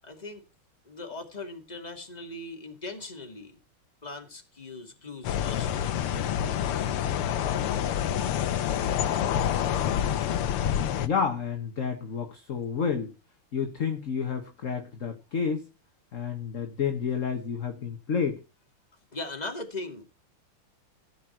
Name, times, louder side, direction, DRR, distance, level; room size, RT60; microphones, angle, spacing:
voice 1, 0.0-0.4 0.8-3.6 4.0-7.0 19.1-20.1, left 2 dB, 20° left, 3 dB, 2.4 m, -40 dB
sound 1, 5.2-11.1, left 10 dB, 85° left, 1.8 m, -27 dB
voice 2, 11.0-13.1 13.5-15.7 16.1-18.4, left 6 dB, 40° left, 5 dB, 1.5 m, -30 dB
15.5 x 7.9 x 4.4 m, 0.31 s
omnidirectional pair, 2.4 m